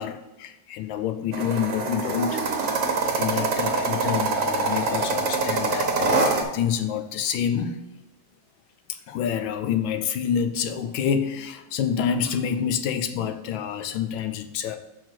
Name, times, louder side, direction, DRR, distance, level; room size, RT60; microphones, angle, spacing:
voice 1, 0.0-2.5 2.8-7.8 8.9-14.8, left 8 dB, 85° left, 8 dB, 1.4 m, -27 dB
sound 1, 1.3-6.4, right 3 dB, 55° right, 1.3 m, -25 dB
6.0 x 4.6 x 6.0 m, 1.0 s
omnidirectional pair, 2.1 m